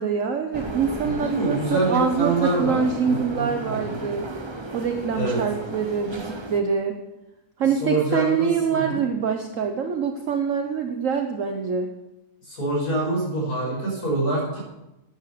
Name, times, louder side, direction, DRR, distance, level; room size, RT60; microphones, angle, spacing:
voice 1, 0.0-4.3 4.7-7.0 7.6-11.9, right 6 dB, 60° right, 4 dB, 1.2 m, -25 dB
sound 1, 0.5-6.6, right 2 dB, 25° right, 0.7 m, -34 dB
voice 2, 1.0-4.0 5.2-5.4 7.8-9.0 12.5-14.6, right 2 dB, 70° left, -2 dB, 5.8 m, -26 dB
11.5 x 9.3 x 6.7 m, 0.96 s
omnidirectional pair, 1.7 m